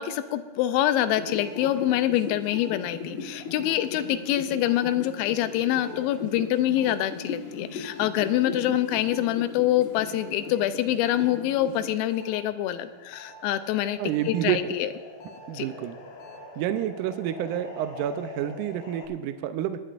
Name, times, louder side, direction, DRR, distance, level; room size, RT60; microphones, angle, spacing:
voice 1, 0.0-14.0 14.3-14.9 15.5-15.7, left 12 dB, 90° left, 11 dB, 2.4 m, -25 dB
sound 1, 1.0-12.3 12.7-19.1, left 4 dB, 65° left, 1.1 m, -39 dB
voice 2, 14.0-14.8 15.2-16.0 16.6-19.8, right 11 dB, 85° right, 9 dB, 1.8 m, -29 dB
20.0 x 11.0 x 2.5 m, 1.3 s
omnidirectional pair, 4.2 m